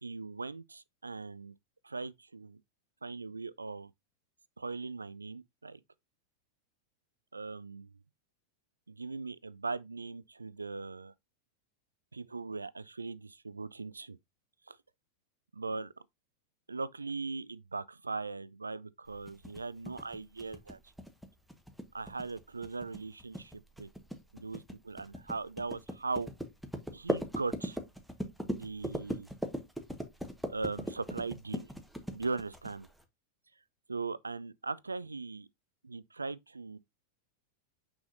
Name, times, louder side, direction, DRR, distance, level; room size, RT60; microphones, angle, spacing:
voice 1, 0.0-1.5 1.8-2.6 3.0-3.9 4.6-5.8 7.3-7.9 8.9-11.1 12.1-14.2 14.7-14.8 15.5-15.9 16.7-20.8 21.9-23.9 24.3-26.3 26.9-27.8 28.5-29.3 30.5-31.7 32.1-32.9 33.9-35.5 35.8-36.8, right 4 dB, 80° right, 0.4 m, -39 dB
sound 1, 19.3-33.0, equal, ahead, 1.2 m, -39 dB
6.2 x 6.2 x 2.5 m
figure-of-eight pair, 90°, 0 cm